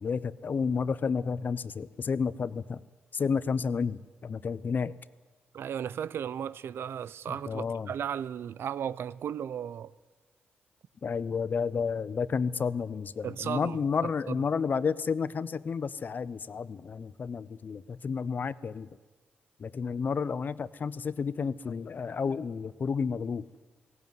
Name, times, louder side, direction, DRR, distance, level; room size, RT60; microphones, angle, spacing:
voice 1, 0.0-2.8 3.1-5.0 7.3-7.9 11.0-18.9 19.6-23.5, left 5 dB, 50° left, 0.7 m, -31 dB
voice 2, 5.5-9.9 13.2-13.8 14.3-14.4, right 8 dB, 70° right, 0.6 m, -35 dB
18.0 x 16.5 x 9.4 m
cardioid pair, 80°, 4 cm